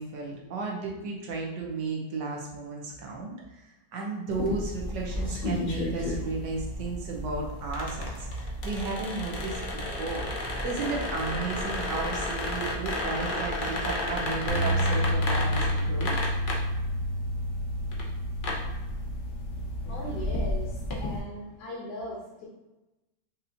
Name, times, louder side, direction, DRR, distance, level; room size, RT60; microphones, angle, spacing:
voice 1, 0.0-10.3 10.6-16.2, right 3 dB, 80° right, -1 dB, 1.6 m, -34 dB
sound 1, 4.3-21.2, left 1 dB, 50° left, 0.6 m, -33 dB
Bass guitar, 14.5-20.7, equal, 85° left, 1.6 m, -30 dB
voice 2, 19.9-22.5, left 1 dB, 65° left, -4 dB, 1.3 m, -39 dB
5.9 x 2.6 x 2.7 m, 1.0 s
omnidirectional pair, 1.9 m